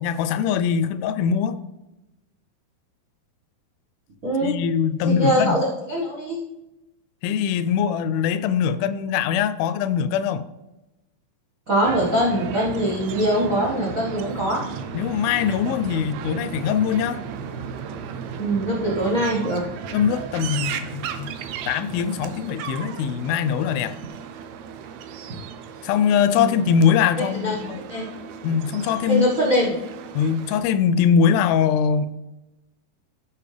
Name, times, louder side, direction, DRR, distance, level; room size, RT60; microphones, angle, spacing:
voice 1, 0.0-1.6 4.4-5.6 7.2-10.5 14.9-17.2 19.9-21.3 21.7-23.9 25.8-27.8 28.4-29.3 30.1-32.1, left 7 dB, 85° left, 14 dB, 2.3 m, -22 dB
voice 2, 4.2-4.6 5.0-6.4 11.7-14.7 18.4-19.6 26.3-26.6 27.3-27.6 27.9-28.0 29.1-29.7, equal, 65° right, -4 dB, 0.8 m, -22 dB
sound 1, 11.8-30.6, right 7 dB, 85° right, 1.6 m, -35 dB
15.5 x 5.2 x 3.3 m, 0.98 s
omnidirectional pair, 4.2 m